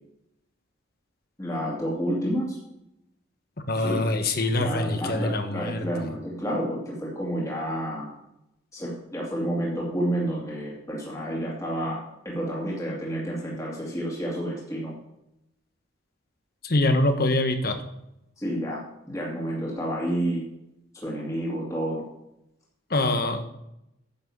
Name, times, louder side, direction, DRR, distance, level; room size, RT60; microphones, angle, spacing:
voice 1, 1.4-2.6 3.8-4.0 4.6-8.1 8.7-14.9 18.4-18.8 19.1-20.4 20.9-22.0, equal, 15° left, -4 dB, 2.2 m, -30 dB
voice 2, 3.7-5.9 16.6-17.8 22.9-23.4, left 2 dB, 50° left, 7 dB, 1.3 m, -24 dB
10.0 x 6.1 x 7.1 m, 0.85 s
head